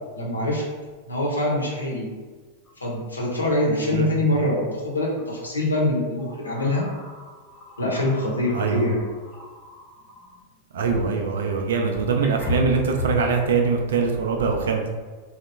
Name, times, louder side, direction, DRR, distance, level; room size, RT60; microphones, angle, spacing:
voice 1, 0.1-0.6 1.1-2.1 2.8-6.9 7.8-9.0, left 1 dB, 80° left, -3 dB, 0.7 m, -24 dB
sound 1, 2.6-2.7 3.1-3.3 5.1-5.3 6.1-10.4 11.6-11.7 12.2-13.3, left 2 dB, 25° left, 0.6 m, -35 dB
voice 2, 8.5-8.9 10.7-14.9, right 5 dB, 60° right, 3 dB, 0.4 m, -23 dB
2.8 x 2.0 x 3.2 m, 1.4 s
figure-of-eight pair, 90°, 0 cm